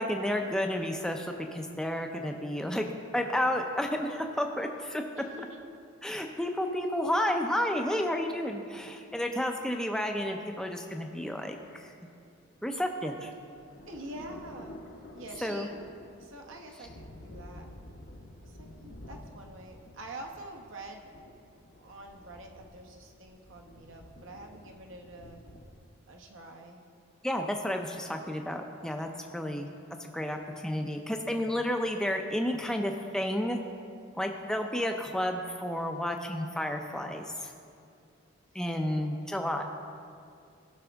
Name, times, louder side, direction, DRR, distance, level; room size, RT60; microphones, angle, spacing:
voice 1, 0.0-2.9 3.1-5.0 6.0-11.9 12.6-13.3 15.4-15.7 27.2-29.7 30.0-33.6 34.2-37.5 38.5-39.6, left 1 dB, 5° left, 3 dB, 0.5 m, -31 dB
voice 2, 5.2-5.6 13.2-13.3 13.9-14.8 15.1-15.7 16.2-17.7 18.6-21.1 21.8-25.4 26.1-26.8 29.4-29.7, right 1 dB, 65° right, 2 dB, 1.0 m, -46 dB
sound 1, 12.8-25.9, left 1 dB, 50° left, 0.8 m, -50 dB
15.5 x 6.1 x 3.4 m, 2.4 s
head